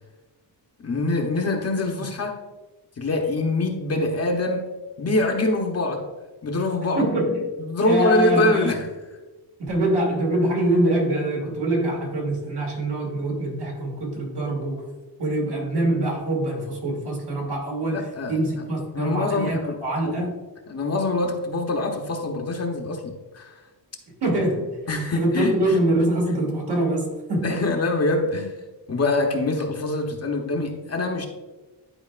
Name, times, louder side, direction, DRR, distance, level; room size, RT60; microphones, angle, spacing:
voice 1, 0.8-2.4 3.0-4.7 5.0-6.1 6.4-7.1 7.6-8.9 17.9-18.3 18.9-20.3 20.7-23.6 24.9-25.8 27.4-31.3, left 2 dB, 35° left, 3 dB, 0.8 m, -24 dB
voice 2, 7.0-7.4 7.8-8.7 9.6-14.9 15.2-20.3 24.2-24.8 25.1-27.6, right 1 dB, 65° right, -1 dB, 2.1 m, -24 dB
11.0 x 4.7 x 2.4 m, 1.2 s
wide cardioid pair, 145°, 43 cm